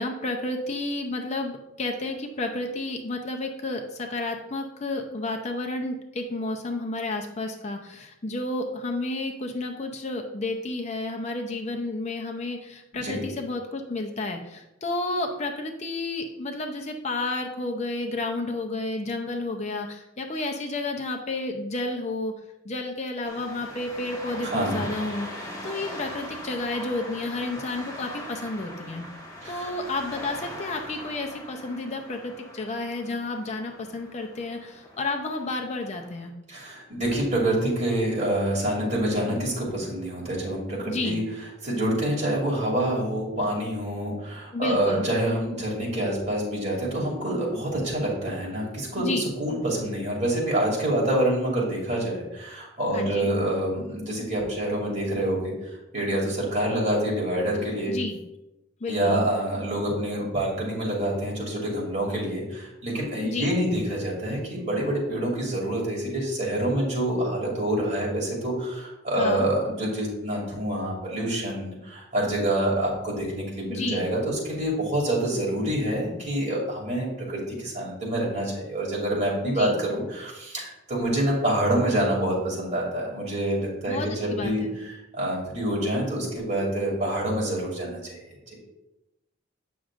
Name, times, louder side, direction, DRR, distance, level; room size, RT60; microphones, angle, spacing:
voice 1, 0.0-22.3 22.6-29.1 29.5-36.3 40.8-41.2 44.5-45.1 49.0-49.3 52.9-53.3 57.9-58.2 58.8-59.2 63.2-63.5 69.2-69.5 73.7-74.1 79.5-79.8 83.9-84.8, left 2 dB, 35° left, 3 dB, 0.5 m, -31 dB
sound 1, 23.2-36.3, left 1 dB, 20° left, 1.3 m, -41 dB
voice 2, 24.4-24.8 29.4-29.7 36.5-41.2 41.6-55.5 55.9-57.9 58.9-84.6 85.1-88.6, right 1 dB, 35° right, -3 dB, 2.6 m, -27 dB
8.7 x 6.1 x 2.5 m, 0.92 s
head